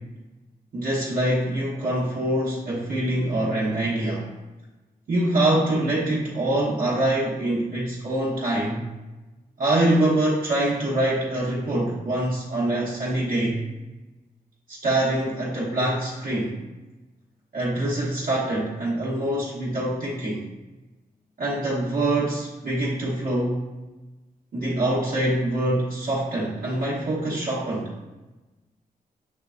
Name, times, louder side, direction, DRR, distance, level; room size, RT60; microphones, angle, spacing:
voice 1, 0.7-4.3 5.1-8.9 9.6-13.6 14.7-16.6 17.5-20.5 21.4-23.6 24.5-28.0, right 1 dB, 70° right, -8 dB, 1.0 m, -24 dB
6.6 x 3.2 x 2.5 m, 1.1 s
wide cardioid pair, 130°, 16 cm